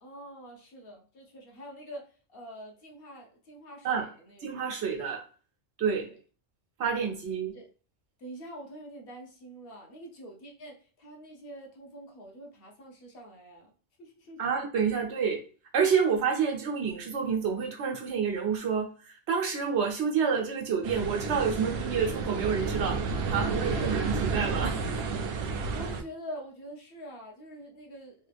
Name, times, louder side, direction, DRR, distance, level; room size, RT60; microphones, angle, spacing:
voice 1, 0.0-4.4 6.1-6.2 7.5-7.7 8.2-13.7 14.0-14.4 23.4-24.0 25.7-28.1, equal, 60° left, 0 dB, 1.0 m, -45 dB
voice 2, 4.4-5.2 5.8-6.1 6.8-7.5 14.4-15.4 15.7-24.8, right 6 dB, 85° right, 1 dB, 1.1 m, -28 dB
sound 1, 20.8-26.0, right 4 dB, 70° right, 0.8 m, -31 dB
3.3 x 2.3 x 3.4 m, 0.39 s
omnidirectional pair, 1.1 m